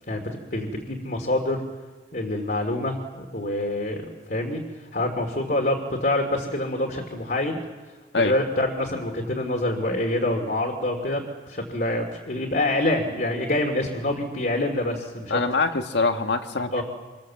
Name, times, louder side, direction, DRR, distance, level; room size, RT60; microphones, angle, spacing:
voice 1, 0.5-1.6 2.1-4.6 4.9-7.6 8.1-15.4 16.7-16.8, left 1 dB, 50° left, 1 dB, 2.7 m, -26 dB
voice 2, 15.3-16.8, left 3 dB, 70° left, 6 dB, 1.8 m, -24 dB
27.0 x 25.0 x 7.5 m, 1.4 s
head